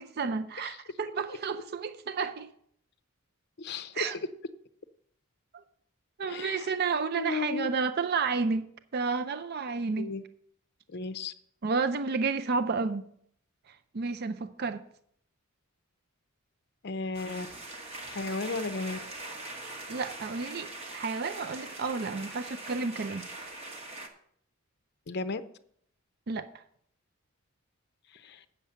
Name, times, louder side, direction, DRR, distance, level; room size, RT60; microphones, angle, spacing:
voice 1, 0.0-2.5 3.9-4.2 5.5-5.6 6.2-8.7 8.9-10.1 11.6-13.1 13.7-14.8 19.9-23.3 26.3-26.6, right 4 dB, 50° right, 0.5 m, -31 dB
voice 2, 3.6-4.1 6.3-6.7 7.1-7.7 10.0-10.2 10.9-11.3 16.8-17.5 18.1-19.0 25.1-25.4 28.1-28.4, left 4 dB, 50° left, 0.6 m, -34 dB
sound 1, 17.1-24.1, right 2 dB, 30° right, 1.2 m, -42 dB
8.5 x 7.1 x 5.6 m
head